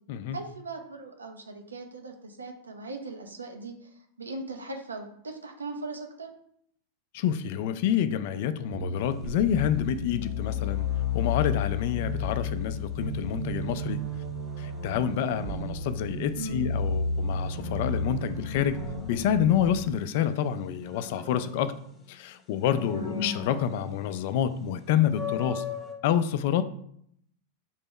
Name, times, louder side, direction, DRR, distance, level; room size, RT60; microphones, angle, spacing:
voice 1, 0.3-6.3 16.4-16.7 22.9-23.3, right 2 dB, 75° right, 5 dB, 0.6 m, -38 dB
voice 2, 7.1-10.9 11.1-14.0 14.6-18.8 19.1-21.7 22.1-25.6 26.0-26.6, left 9 dB, 50° left, 12 dB, 0.3 m, -28 dB
sound 1, 8.7-19.8, left 3 dB, 45° right, 1.0 m, -32 dB
sound 2, 9.0-9.4 18.7-20.1 20.5-22.2 22.7-24.2 24.6-24.7 25.1-25.9, left 7 dB, 15° left, 0.8 m, -40 dB
4.4 x 2.9 x 3.7 m, 0.69 s
figure-of-eight pair, 90°, 0 cm